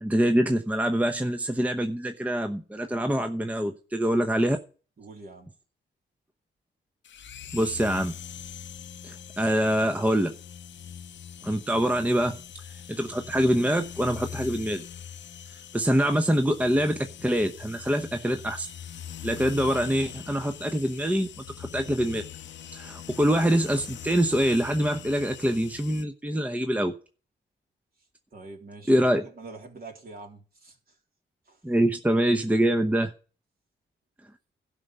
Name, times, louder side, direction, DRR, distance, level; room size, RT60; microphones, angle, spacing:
voice 1, 0.0-4.6 7.5-8.1 9.0-10.3 11.4-12.4 12.9-14.8 15.7-18.7 19.2-21.3 21.6-22.2 22.7-26.9 28.9-29.2 31.6-33.1, equal, 5° right, 0.9 m, -25 dB
voice 2, 5.0-5.5 28.3-30.8 31.5-31.6, right 3 dB, 50° right, 3.6 m, -44 dB
sound 1, 7.0-26.0, left 9 dB, 65° left, 0.7 m, -42 dB
12.0 x 5.5 x 8.1 m
cardioid pair, 75°, 20 cm